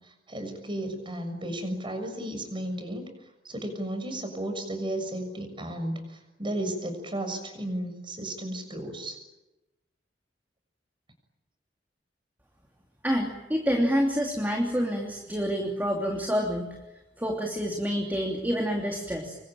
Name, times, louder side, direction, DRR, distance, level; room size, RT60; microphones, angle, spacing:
voice 1, 0.3-3.1 3.4-6.0 6.4-9.2, right 1 dB, 30° right, 6 dB, 6.8 m, -33 dB
voice 2, 13.0-16.8 17.2-19.4, equal, 10° right, 1 dB, 3.0 m, -27 dB
27.0 x 23.5 x 9.0 m, 1.0 s
head